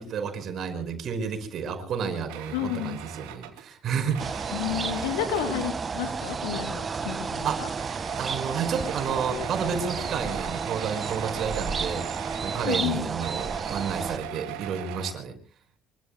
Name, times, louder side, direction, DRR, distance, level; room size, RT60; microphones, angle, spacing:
voice 1, 0.0-4.2 7.4-7.6 8.2-15.4, right 6 dB, 55° right, 7 dB, 5.3 m, -31 dB
sound 1, 2.3-5.8 6.8-7.2 7.5-15.1, right 13 dB, 75° right, 2.8 m, -41 dB
voice 2, 2.5-3.0 4.5-7.7 12.6-13.1, left 10 dB, 80° left, 8 dB, 2.7 m, -31 dB
sound 2, 4.2-14.2, right 5 dB, 35° right, 1.6 m, -32 dB
25.5 x 24.5 x 2.2 m, 0.36 s
hypercardioid pair, 60°, 0 cm